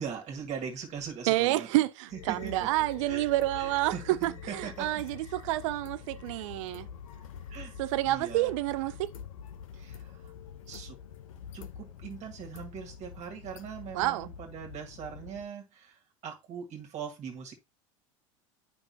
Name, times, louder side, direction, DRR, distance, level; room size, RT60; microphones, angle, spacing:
voice 1, 0.0-1.7 2.1-2.7 3.0-3.2 3.6-4.9 7.5-7.7 8.1-8.5 9.7-10.3 10.7-11.0 11.5-17.5, right 7 dB, 40° right, 1.8 m, -41 dB
voice 2, 1.3-6.9 7.8-9.1 13.9-14.3, right 17 dB, 65° right, 0.4 m, -29 dB
sound 1, 2.1-15.4, left 8 dB, 80° left, 0.8 m, -46 dB
8.9 x 5.3 x 2.7 m
hypercardioid pair, 90°, 17 cm